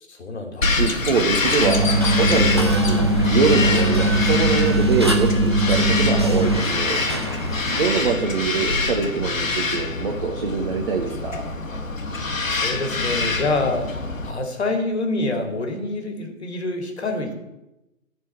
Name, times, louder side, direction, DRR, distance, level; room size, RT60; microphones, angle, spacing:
voice 1, 0.1-0.8 7.2-7.6 12.4-14.0 14.2-17.3, left 2 dB, 50° left, 4 dB, 2.3 m, -27 dB
Bird vocalization bird call bird song, 0.6-14.3, left 3 dB, 70° left, 1.6 m, -25 dB
voice 2, 0.8-3.0 3.3-7.0 7.7-11.5, right 5 dB, 40° right, 2 dB, 1.2 m, -24 dB
sound 1, 1.4-7.9, equal, 20° right, 0.5 m, -30 dB
sound 2, 1.6-6.6, right 1 dB, 85° right, 1.5 m, -20 dB
13.0 x 4.7 x 7.5 m, 0.94 s
figure-of-eight pair, 145°, 41 cm